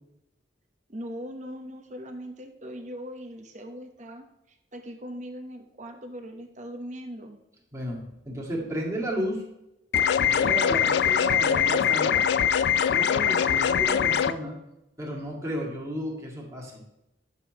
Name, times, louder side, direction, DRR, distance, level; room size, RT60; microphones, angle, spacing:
voice 1, 0.9-4.3 4.7-7.4, equal, 45° right, 5 dB, 1.0 m, -40 dB
voice 2, 7.7-9.4 10.2-12.2 12.9-14.6 15.0-16.8, right 1 dB, 15° right, -3 dB, 2.0 m, -33 dB
sound 1, 9.9-14.3, left 8 dB, 65° left, 0.4 m, -22 dB
10.5 x 6.9 x 3.0 m, 0.89 s
head